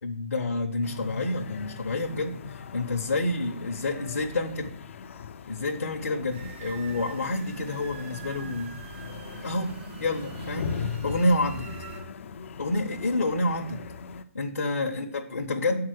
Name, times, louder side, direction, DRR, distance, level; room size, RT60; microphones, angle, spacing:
voice 1, 0.0-4.7 5.5-9.0 9.4-9.7 10.0-10.8 11.0-11.7 12.6-13.8 14.4-15.8, left 2 dB, 80° left, 3 dB, 0.9 m, -28 dB
sound 1, 0.8-14.2, left 7 dB, 60° left, 0.5 m, -40 dB
sound 2, 6.3-12.0, right 5 dB, 55° right, 2.5 m, -43 dB
7.5 x 4.7 x 6.5 m, 0.71 s
hypercardioid pair, 135°, 8 cm